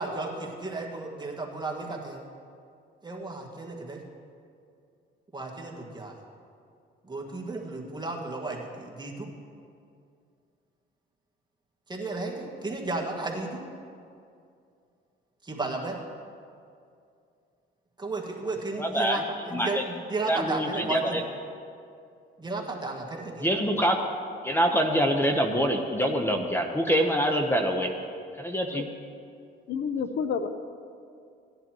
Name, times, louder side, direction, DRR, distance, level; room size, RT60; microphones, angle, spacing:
voice 1, 0.0-2.2 3.0-4.0 5.3-6.1 7.0-9.3 11.9-13.6 15.4-16.0 18.0-21.2 22.4-23.5, right 3 dB, 20° right, -1 dB, 1.7 m, -33 dB
voice 2, 18.8-19.8 20.3-21.2 23.4-24.1 24.4-27.9 28.4-28.9, equal, 10° left, 3 dB, 0.9 m, -25 dB
voice 3, 29.7-30.5, left 6 dB, 65° left, 9 dB, 0.7 m, -29 dB
17.0 x 10.5 x 3.0 m, 2.4 s
cardioid pair, 90°, 20 cm